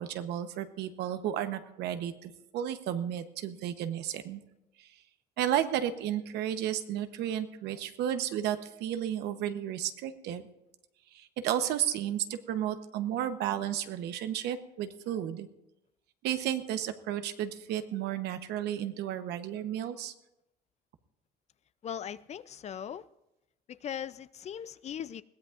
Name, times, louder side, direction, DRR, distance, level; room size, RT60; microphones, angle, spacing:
voice 1, 0.0-4.4 4.8-4.9 5.4-10.4 11.1-15.5 16.2-20.1, right 10 dB, 85° right, 1.0 m, -33 dB
voice 2, 21.8-23.0 23.8-25.2, left 9 dB, 40° left, 0.4 m, -39 dB
21.0 x 16.0 x 2.5 m
cardioid pair, 110°, 17 cm